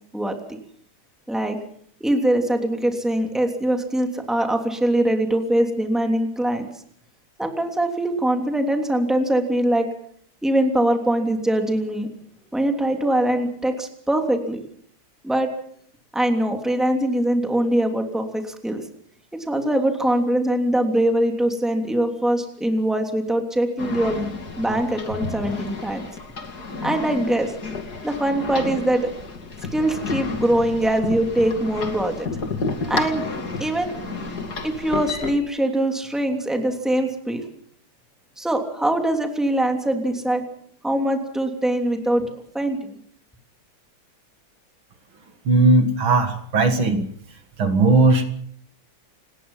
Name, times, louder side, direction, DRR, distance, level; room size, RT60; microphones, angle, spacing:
voice 1, 0.1-0.6 1.3-1.6 2.0-6.7 7.4-9.9 10.4-12.1 12.5-14.6 15.2-15.5 16.1-18.8 19.5-24.3 24.6-26.0 26.8-27.5 28.0-29.1 29.7-32.3 32.9-33.2 33.6-33.9 34.6-37.5 38.4-40.4 40.8-42.9, right 1 dB, ahead, 4 dB, 3.0 m, -22 dB
sound 1, 23.8-35.3, left 3 dB, 50° left, 2.9 m, -31 dB
voice 2, 45.5-47.1 47.6-48.2, right 3 dB, 70° right, 7 dB, 2.8 m, -17 dB
29.0 x 20.0 x 5.7 m, 0.62 s
omnidirectional pair, 2.3 m